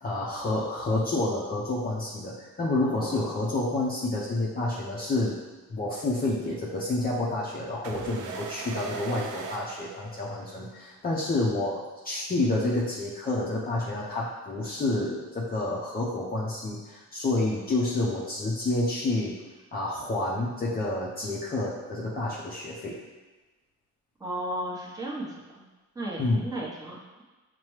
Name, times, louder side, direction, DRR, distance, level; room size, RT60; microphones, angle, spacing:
voice 1, 0.0-5.4 5.7-19.4 19.7-23.0 26.2-26.5, left 2 dB, 30° left, -6 dB, 0.7 m, -29 dB
voice 2, 2.8-3.3 24.2-25.3 25.9-27.2, right 1 dB, 10° right, -5 dB, 1.0 m, -35 dB
sound 1, 7.8-10.6, right 5 dB, 80° right, 0.5 m, -40 dB
5.6 x 2.2 x 3.1 m, 1.2 s
cardioid pair, 90°, 30 cm